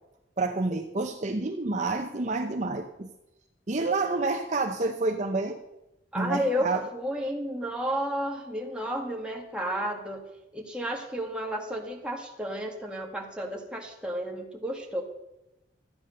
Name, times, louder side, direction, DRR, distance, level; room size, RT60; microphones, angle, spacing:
voice 1, 0.4-3.1 3.7-5.6 6.2-6.8, right 3 dB, 40° right, 4 dB, 0.8 m, -28 dB
voice 2, 6.1-10.2 10.5-15.0, equal, 5° right, 0 dB, 2.0 m, -32 dB
13.0 x 9.3 x 6.7 m, 0.92 s
head